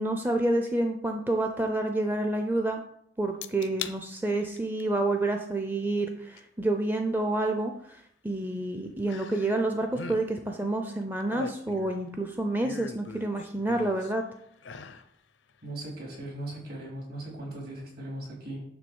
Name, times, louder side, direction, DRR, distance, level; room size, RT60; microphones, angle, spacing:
voice 1, 0.0-2.8 3.2-14.2, right 2 dB, 10° right, 4 dB, 0.5 m, -28 dB
sound 1, 3.4-4.0 4.4-4.8 6.4-6.5 9.1-9.6 9.9-10.2 11.0-12.1 12.6-14.1 14.6-15.1 15.5-15.6, left 6 dB, 85° left, 0.6 m, -41 dB
voice 2, 15.6-18.6, right 1 dB, 55° right, -2 dB, 3.2 m, -38 dB
9.5 x 3.6 x 7.0 m, 0.71 s
head